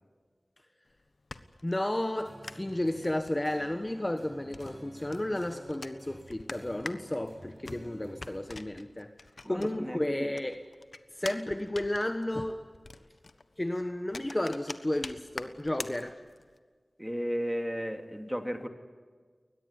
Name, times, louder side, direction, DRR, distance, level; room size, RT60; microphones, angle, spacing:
sound 1, 0.9-10.0 10.3-16.6, left 3 dB, 70° left, 1.2 m, -45 dB
voice 1, 1.6-9.1 9.4-10.6 11.1-12.7 13.6-16.2, left 1 dB, 25° left, 7 dB, 1.3 m, -32 dB
sound 2, 2.2-8.4, right 1 dB, 40° right, 7.5 m, -51 dB
voice 2, 9.4-10.3 17.0-18.7, equal, 5° right, 5 dB, 2.7 m, -34 dB
22.0 x 20.0 x 9.8 m, 1.6 s
wide cardioid pair, 70°, 0 cm